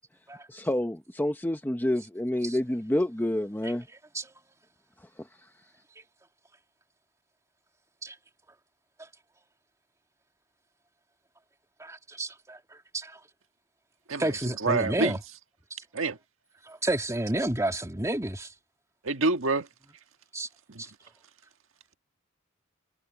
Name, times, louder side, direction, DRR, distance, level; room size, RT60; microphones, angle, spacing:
voice 1, 0.5-3.8, left 1 dB, 10° left, 0.8 m, -28 dB
voice 2, 11.8-12.6 12.9-13.1 14.2-15.2 16.7-18.5 20.3-20.5, right 1 dB, 15° right, 2.4 m, -30 dB
voice 3, 14.1-15.2 15.9-16.2 19.0-19.7 20.7-20.8, right 3 dB, 70° right, 1.7 m, -27 dB
head